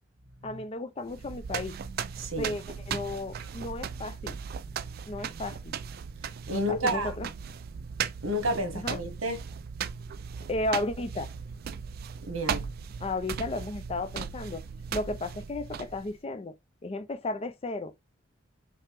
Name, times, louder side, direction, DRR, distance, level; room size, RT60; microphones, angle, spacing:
voice 1, 0.4-1.8 2.4-4.4 5.1-5.7 6.5-7.3 8.7-9.0 10.5-11.3 13.0-14.6 14.9-16.5 16.8-17.9, left 2 dB, 30° left, 0.4 m, -34 dB
sound 1, 1.0-16.2, right 7 dB, 50° right, 0.3 m, -37 dB
voice 2, 2.2-2.5 6.5-7.1 8.2-9.4 12.2-12.6, equal, 85° right, 1.3 m, -30 dB
5.7 x 2.1 x 3.4 m
head